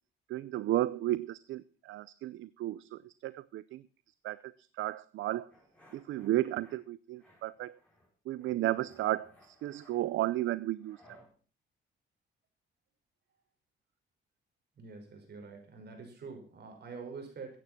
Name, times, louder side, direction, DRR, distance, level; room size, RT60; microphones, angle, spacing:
voice 1, 0.3-3.8 4.2-5.5 5.9-7.8 8.3-11.0, right 15 dB, 75° right, 18 dB, 0.5 m, -33 dB
sound 1, 5.5-6.8 7.2-8.1 8.4-11.3, equal, 5° left, 6.7 m, -62 dB
voice 2, 14.8-17.6, right 4 dB, 55° right, 4 dB, 5.9 m, -46 dB
15.0 x 9.2 x 6.0 m, 0.38 s
cardioid pair, 90°, 20 cm